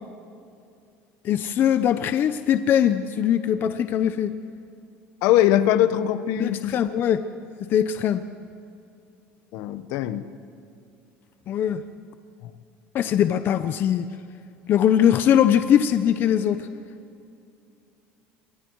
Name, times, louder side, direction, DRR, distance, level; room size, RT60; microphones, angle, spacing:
voice 1, 1.2-4.3 6.4-7.2 7.6-8.2 11.5-11.8 12.9-14.1 14.7-16.6, left 9 dB, 45° left, 10 dB, 0.8 m, -21 dB
voice 2, 5.2-6.8 9.5-10.3, left 12 dB, 75° left, 12 dB, 1.2 m, -21 dB
27.5 x 24.5 x 4.8 m, 2.5 s
cardioid pair, 130°, 5 cm